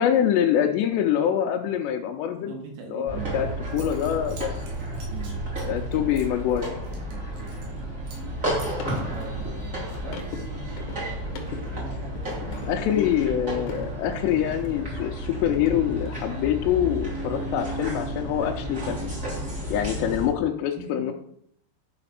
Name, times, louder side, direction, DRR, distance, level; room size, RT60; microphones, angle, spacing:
voice 1, 0.0-2.5 2.9-3.5 3.7-4.6 5.7-6.7 12.7-19.1 19.7-21.1, left 10 dB, 85° left, 1 dB, 2.8 m, -25 dB
voice 2, 2.5-3.5 5.1-5.8 7.1-7.6 8.2-8.4 9.1-10.8 11.1-12.9 13.8-13.9 18.8-19.2 21.0-21.1, right 4 dB, 90° right, 2 dB, 4.0 m, -42 dB
sound 1, 3.1-20.3, right 1 dB, 20° right, 2.5 m, -32 dB
Zipper (clothing) / Coin (dropping), 3.3-3.4 3.7-7.8 8.1-8.3 8.6-10.4, right 3 dB, 65° right, 3.7 m, -49 dB
sound 2, 8.2-15.2 15.5-17.0, left 5 dB, 65° left, 2.0 m, -43 dB
9.8 x 5.0 x 5.7 m, 0.69 s
omnidirectional pair, 5.1 m